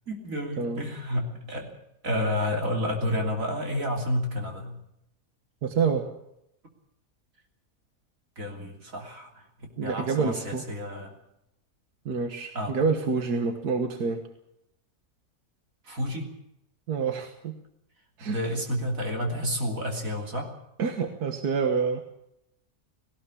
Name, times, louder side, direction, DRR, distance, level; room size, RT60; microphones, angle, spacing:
voice 1, 0.1-1.7 2.0-4.8 8.4-9.4 9.8-11.1 12.6-12.9 15.9-16.3 18.2-20.5, equal, 60° right, 1 dB, 3.6 m, -30 dB
voice 2, 5.6-6.1 9.8-10.6 12.1-14.2 16.9-17.5 18.2-18.4 20.8-22.0, right 5 dB, 85° right, 5 dB, 2.0 m, -27 dB
18.0 x 17.5 x 8.4 m, 0.81 s
omnidirectional pair, 1.6 m